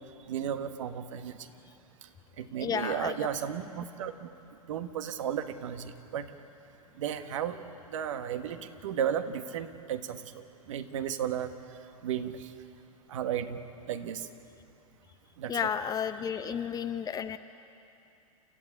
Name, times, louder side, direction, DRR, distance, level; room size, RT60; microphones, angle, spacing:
voice 1, 0.3-1.4 2.4-4.3 4.7-6.3 7.0-7.6 7.9-10.2 10.7-11.5 12.0-12.5 13.1-13.6 13.9-14.3 15.4-15.6, right 9 dB, 60° right, 8 dB, 1.5 m, -34 dB
voice 2, 2.6-3.1 15.5-17.4, left 8 dB, 20° left, 11 dB, 0.8 m, -32 dB
29.0 x 14.5 x 8.7 m, 2.7 s
figure-of-eight pair, 100°, 19 cm